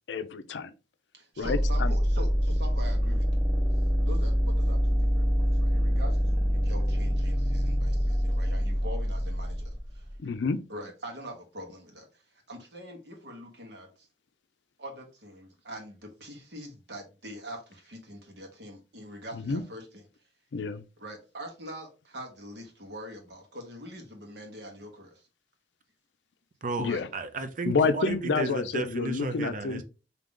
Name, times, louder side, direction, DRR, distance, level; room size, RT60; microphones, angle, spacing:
voice 1, 0.1-0.7 1.4-1.9 10.2-10.6 19.3-19.6 20.5-20.8 26.8-27.1 27.6-29.8, left 4 dB, 80° left, 0.4 m, -29 dB
voice 2, 1.1-3.5 4.1-10.1 10.7-12.2 12.5-14.1 14.8-20.0 21.0-25.3 26.8-27.0, equal, 65° right, 1.3 m, -43 dB
sound 1, 1.4-10.1, equal, 20° right, 1.1 m, -25 dB
voice 3, 26.6-29.8, right 3 dB, 45° right, 0.6 m, -33 dB
3.7 x 2.8 x 3.7 m
head